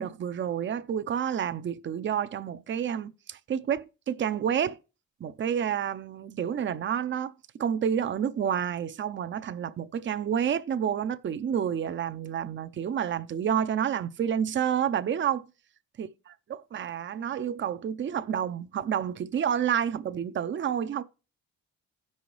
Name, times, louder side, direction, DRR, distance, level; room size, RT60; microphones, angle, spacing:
voice 1, 0.0-4.8 5.2-7.3 7.6-15.4 16.0-21.0, right 8 dB, 40° right, 0.6 m, -29 dB
16.0 x 5.5 x 3.0 m
cardioid pair, 90°, 30 cm